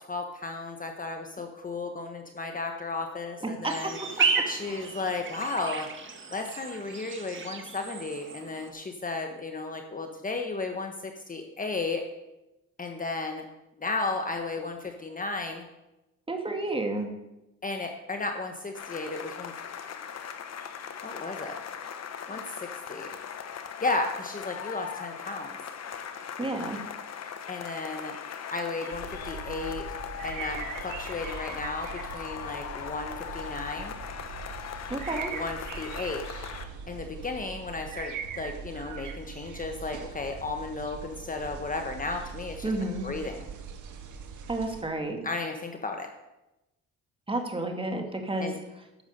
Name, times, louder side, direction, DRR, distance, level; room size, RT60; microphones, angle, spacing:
voice 1, 0.0-4.0 4.5-5.9 6.3-12.0 12.8-13.4 13.8-15.7 17.6-19.5 21.0-21.6 22.3-23.2 23.8-25.6 27.2-28.2 28.5-29.8 30.2-34.0 35.3-36.3 36.9-42.7 43.0-43.4 45.2-46.1 48.4-48.5, left 3 dB, 25° left, 4 dB, 1.3 m, -34 dB
voice 2, 3.4-3.7 4.7-4.8 16.3-17.1 26.4-26.8 34.9-35.3 42.6-43.1 44.5-45.2 47.3-48.5, right 2 dB, 15° right, 3 dB, 2.2 m, -31 dB
sound 1, 3.6-8.7, right 5 dB, 40° right, 1.7 m, -32 dB
sound 2, 18.7-36.7, left 7 dB, 60° left, 1.2 m, -39 dB
sound 3, 28.9-44.8, right 6 dB, 75° right, 1.7 m, -41 dB
11.5 x 7.1 x 6.6 m, 0.96 s
cardioid pair, 90°, 30 cm